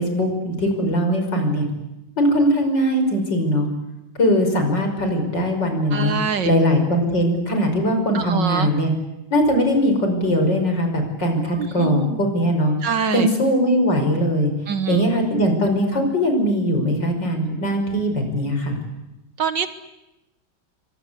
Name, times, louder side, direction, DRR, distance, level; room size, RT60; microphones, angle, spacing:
voice 1, 0.0-1.7 2.2-3.7 4.2-6.2 6.4-8.9 9.3-12.7 13.1-14.5 14.9-18.8, equal, 55° left, 5 dB, 6.3 m, -20 dB
voice 2, 5.9-6.5 8.1-8.7 11.6-12.2 12.8-13.3 14.7-15.0 19.4-19.7, right 6 dB, 60° right, 11 dB, 1.9 m, -24 dB
29.0 x 24.5 x 8.3 m, 0.94 s
omnidirectional pair, 2.3 m